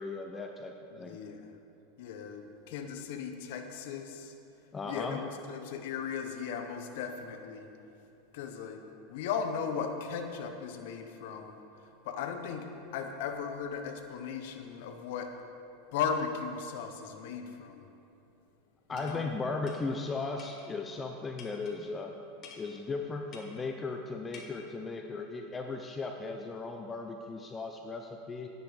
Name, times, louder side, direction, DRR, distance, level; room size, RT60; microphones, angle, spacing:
voice 1, 0.0-1.2 4.7-5.2 18.9-22.1 22.6-28.5, left 3 dB, 20° left, 4 dB, 0.7 m, -37 dB
voice 2, 0.9-1.6 2.0-4.3 4.8-7.7 8.3-8.8 9.1-11.5 12.0-12.7 12.9-15.3 15.9-17.8 18.9-19.3, left 6 dB, 65° left, 5 dB, 1.1 m, -37 dB
sound 1, 19.0-19.2 19.7-19.8 20.4-20.7 21.4-21.8 22.4-22.7 23.3-23.6 24.3-24.5, left 5 dB, 45° left, 1.6 m, -50 dB
10.5 x 9.5 x 5.1 m, 2.8 s
hypercardioid pair, 95°, 0 cm